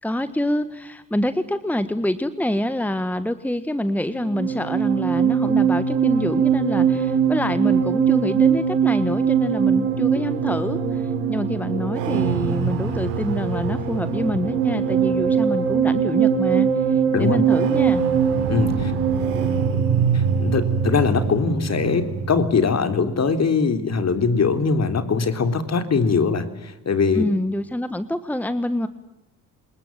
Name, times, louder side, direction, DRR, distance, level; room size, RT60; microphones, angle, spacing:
voice 1, 0.0-18.0 27.1-28.9, left 1 dB, 5° left, 12 dB, 1.5 m, -26 dB
sound 1, 4.1-22.6, right 7 dB, 90° right, 3.9 m, -21 dB
voice 2, 18.5-18.9 20.1-27.2, left 5 dB, 45° left, 9 dB, 3.7 m, -21 dB
26.5 x 21.0 x 9.0 m, 0.91 s
supercardioid pair, 65°, 38 cm